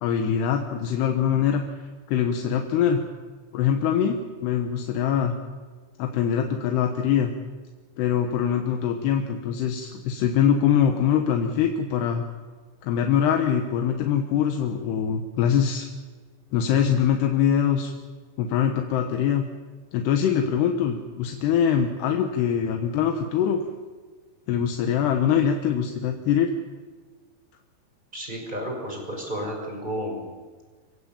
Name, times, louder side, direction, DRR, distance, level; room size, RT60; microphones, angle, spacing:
voice 1, 0.0-1.6 2.1-3.0 3.5-5.3 6.0-7.3 8.0-12.3 12.8-15.9 16.5-17.9 18.4-19.4 19.9-23.6 24.5-26.5, left 8 dB, 80° left, 4 dB, 3.3 m, -23 dB
voice 2, 28.1-30.3, equal, 10° right, 0 dB, 5.9 m, -32 dB
26.5 x 16.0 x 8.8 m, 1.4 s
omnidirectional pair, 4.7 m